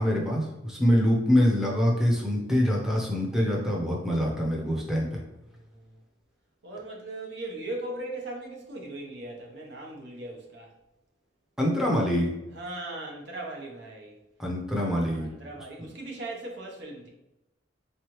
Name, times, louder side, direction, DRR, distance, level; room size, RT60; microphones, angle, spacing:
voice 1, 0.0-5.2 11.6-12.3 14.4-15.3, equal, 5° right, -3 dB, 0.7 m, -25 dB
voice 2, 5.4-6.0 6.6-10.7 12.5-14.2 14.7-17.1, right 2 dB, 65° right, 0 dB, 0.9 m, -39 dB
3.8 x 3.2 x 3.0 m, 0.92 s
head